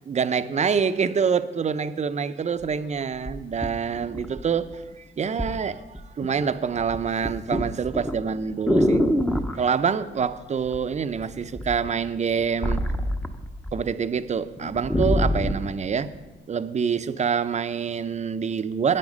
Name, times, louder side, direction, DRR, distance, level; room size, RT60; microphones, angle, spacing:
voice 1, 0.1-9.0 9.5-12.8 13.7-16.1 16.5-19.0, right 6 dB, 35° right, 11 dB, 0.6 m, -26 dB
sound 1, 2.6-2.7 3.2-4.7 5.4-5.6 5.9-6.4 6.7-9.6 10.7-11.2 11.5-13.8 14.1-14.2 14.6-15.7 16.3-16.4, equal, 5° left, 0.8 m, -25 dB
10.5 x 9.2 x 5.4 m, 1.2 s
cardioid pair, 90°, 20 cm